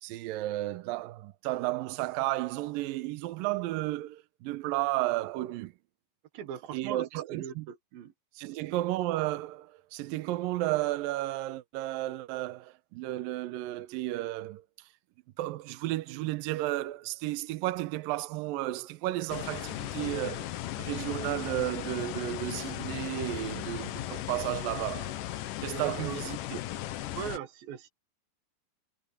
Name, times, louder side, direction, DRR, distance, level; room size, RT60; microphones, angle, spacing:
voice 1, 0.0-5.7 6.7-7.7 8.4-14.6 15.4-20.5 20.8-25.2 25.6-26.6, right 16 dB, 80° right, 2.0 m, -33 dB
voice 2, 6.3-8.1 8.4-8.7 25.8-26.2 27.1-27.9, right 9 dB, 65° right, 2.8 m, -39 dB
sound 1, 19.3-27.4, left 14 dB, 75° left, 1.9 m, -37 dB
omnidirectional pair, 5.0 m